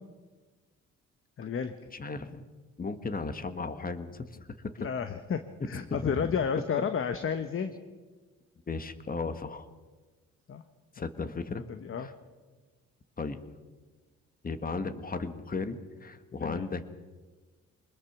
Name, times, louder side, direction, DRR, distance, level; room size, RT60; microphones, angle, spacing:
voice 1, 1.4-1.7 4.8-7.7 10.5-10.6 11.0-11.3 11.7-12.1 16.4-16.7, left 7 dB, 45° left, 9 dB, 1.2 m, -32 dB
voice 2, 1.9-2.4 2.8-4.7 5.7-6.3 8.7-9.7 10.9-11.6 12.0-12.1 13.2-13.4 14.4-16.9, left 4 dB, 30° left, 10 dB, 1.6 m, -35 dB
24.5 x 20.5 x 6.1 m, 1.3 s
cardioid pair, 90°, 30 cm